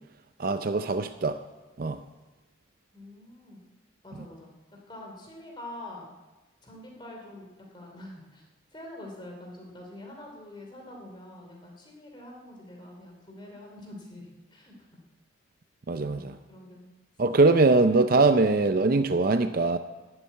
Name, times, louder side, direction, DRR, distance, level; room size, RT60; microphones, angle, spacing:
voice 1, 0.4-1.4 1.8-2.0 15.9-16.4 17.2-19.8, right 3 dB, 45° right, 10 dB, 0.5 m, -22 dB
voice 2, 2.9-3.7 4.0-6.1 6.6-8.4 8.7-14.7 15.9-16.9, left 1 dB, 25° left, 0 dB, 2.9 m, -45 dB
12.0 x 8.0 x 9.4 m, 1.1 s
head